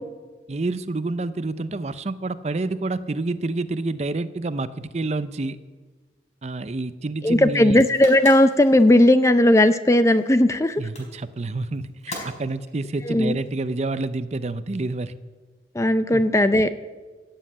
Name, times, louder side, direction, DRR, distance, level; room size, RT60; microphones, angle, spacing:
voice 1, 0.5-5.6 6.4-7.8 10.8-15.1 16.1-16.2, right 2 dB, 40° right, 13 dB, 0.5 m, -28 dB
voice 2, 7.2-10.8 13.0-13.4 15.7-16.8, left 1 dB, 15° left, 11 dB, 0.5 m, -17 dB
sound 1, 7.7-14.0, left 1 dB, 40° left, 4.4 m, -42 dB
15.5 x 7.4 x 8.6 m, 1.4 s
head